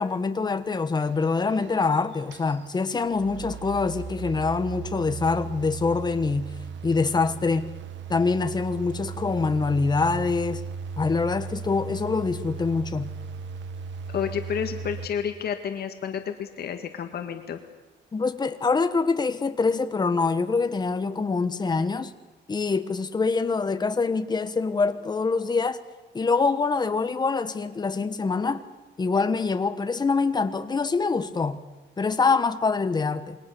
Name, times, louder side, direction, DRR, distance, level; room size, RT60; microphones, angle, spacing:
voice 1, 0.0-6.5 6.8-7.7 8.1-10.6 11.0-13.1 18.1-22.1 22.5-25.8 26.1-28.6 29.0-31.6 32.0-33.4, left 4 dB, 20° left, 1.2 m, -25 dB
sound 1, 1.0-15.1, right 6 dB, 70° right, 1.5 m, -37 dB
voice 2, 14.1-17.6, left 8 dB, 55° left, 1.8 m, -30 dB
28.0 x 22.5 x 6.9 m
cardioid pair, 175°, 20 cm